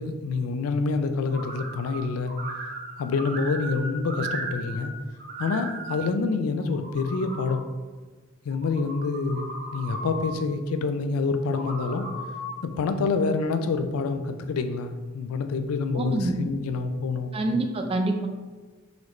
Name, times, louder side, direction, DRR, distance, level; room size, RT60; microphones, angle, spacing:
voice 1, 0.0-2.3 3.0-4.9 5.4-7.6 8.4-12.1 12.6-17.4, left 4 dB, 80° left, 9 dB, 0.4 m, -27 dB
sound 1, 1.3-2.0 2.3-4.9 5.2-6.0 6.6-7.6 8.5-10.3 11.4-12.6, right 2 dB, 45° right, 0.8 m, -36 dB
voice 2, 16.0-16.3 17.3-18.3, right 2 dB, 25° right, 4 dB, 0.3 m, -26 dB
3.9 x 3.1 x 3.1 m, 1.3 s
head